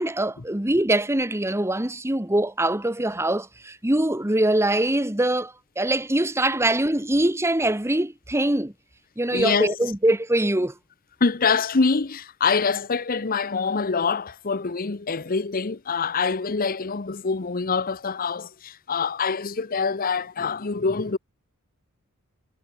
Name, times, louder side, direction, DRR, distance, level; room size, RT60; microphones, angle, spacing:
voice 1, 0.0-8.7 9.2-10.7, right 1 dB, 10° right, 1.4 m, -23 dB
voice 2, 9.3-9.8 11.2-21.2, left 4 dB, 40° left, 0.8 m, -25 dB
head